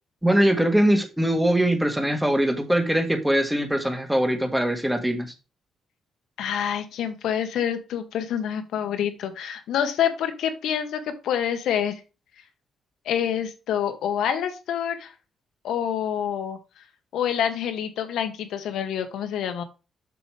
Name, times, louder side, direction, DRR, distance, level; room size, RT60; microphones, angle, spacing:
voice 1, 0.2-5.3, right 1 dB, 5° right, 1.7 m, -22 dB
voice 2, 6.4-12.0 13.0-15.1 15.6-16.6 17.1-19.6, left 9 dB, 80° left, 1.3 m, -27 dB
7.1 x 7.0 x 3.4 m
cardioid pair, 90°, 0 cm